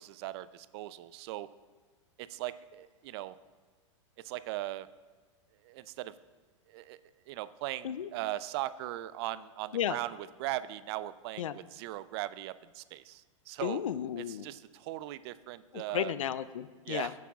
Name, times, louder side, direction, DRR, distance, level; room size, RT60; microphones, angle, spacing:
voice 1, 0.0-1.5 2.2-3.4 4.2-4.9 5.6-6.1 6.7-7.0 7.3-13.8 14.2-16.1 16.8-17.1, right 15 dB, 55° right, 16 dB, 0.4 m, -39 dB
voice 2, 13.6-14.5 15.7-17.1, left 10 dB, 85° left, 15 dB, 0.4 m, -33 dB
16.0 x 8.2 x 2.4 m, 1.4 s
hypercardioid pair, 110°, 16 cm